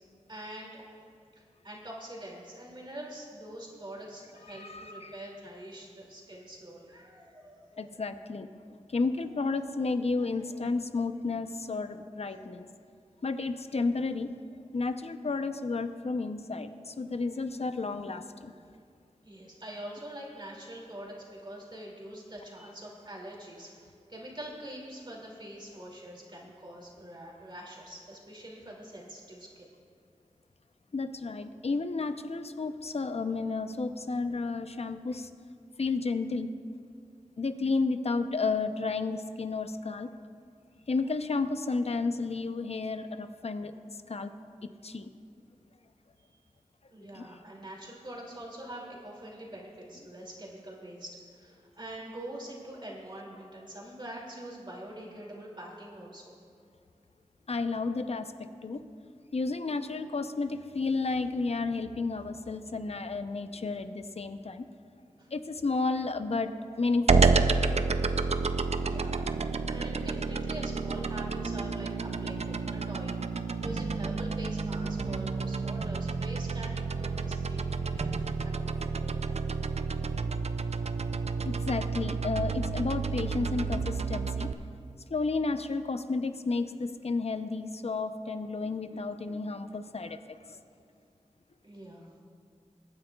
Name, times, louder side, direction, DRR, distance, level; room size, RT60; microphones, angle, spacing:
voice 1, 0.3-0.8 1.4-8.0 10.2-10.5 12.2-12.4 19.2-29.7 46.9-56.3 65.2-65.3 68.1-68.5 68.8-69.3 69.7-79.4 91.6-92.1, right 1 dB, 40° right, -3 dB, 2.5 m, -44 dB
voice 2, 4.5-5.1 7.8-8.5 8.9-12.7 13.2-14.3 14.7-18.5 30.9-35.3 35.8-36.5 37.4-40.1 40.9-44.3 44.6-45.1 47.1-47.3 57.5-58.3 58.6-58.8 59.3-64.6 65.3-67.5 81.4-84.5 85.1-90.2 90.5-90.6, left 3 dB, 55° left, 9 dB, 0.6 m, -32 dB
sound 1, 67.1-84.5, right 4 dB, 60° right, 0.4 m, -30 dB
22.5 x 9.5 x 2.3 m, 2.3 s
wide cardioid pair, 65°, 12 cm